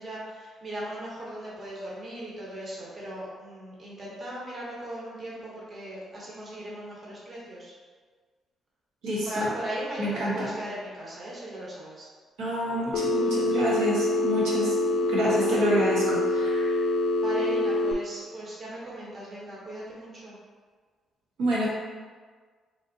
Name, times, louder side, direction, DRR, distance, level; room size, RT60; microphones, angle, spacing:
voice 1, 0.0-7.7 9.2-12.1 15.0-15.4 17.2-20.4, right 1 dB, 40° right, -5 dB, 1.0 m, -38 dB
voice 2, 9.0-9.5 10.0-10.5 12.4-16.8 21.4-21.7, equal, 90° right, -6 dB, 1.1 m, -28 dB
Telephone, 12.9-17.9, left 2 dB, 85° left, 0.3 m, -25 dB
3.8 x 3.4 x 2.6 m, 1.5 s
cardioid pair, 90°, 0 cm